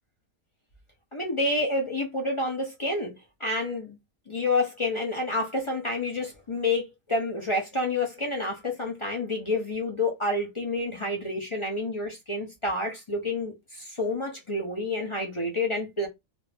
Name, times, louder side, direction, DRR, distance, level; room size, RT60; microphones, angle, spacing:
voice 1, 1.1-3.1 3.4-4.0 4.3-16.1, left 2 dB, 35° left, 0.5 m, -29 dB
2.7 x 2.6 x 3.3 m
omnidirectional pair, 1.7 m